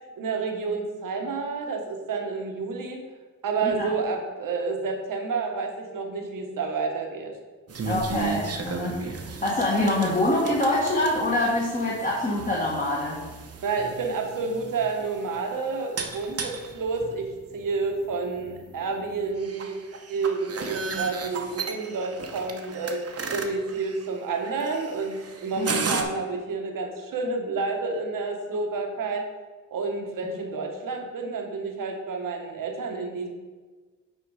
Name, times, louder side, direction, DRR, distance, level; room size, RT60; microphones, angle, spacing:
voice 1, 0.2-3.0 3.4-7.3 13.6-19.8 20.1-23.0 23.3-29.2 29.7-33.3, right 4 dB, 75° right, 3 dB, 1.4 m, -29 dB
sound 1, 7.7-26.0, right 5 dB, 45° right, 1.0 m, -36 dB
voice 2, 7.8-13.2 25.5-26.0, left 1 dB, 25° left, -5 dB, 1.7 m, -25 dB
8.8 x 4.4 x 4.8 m, 1.4 s
cardioid pair, 80°, 33 cm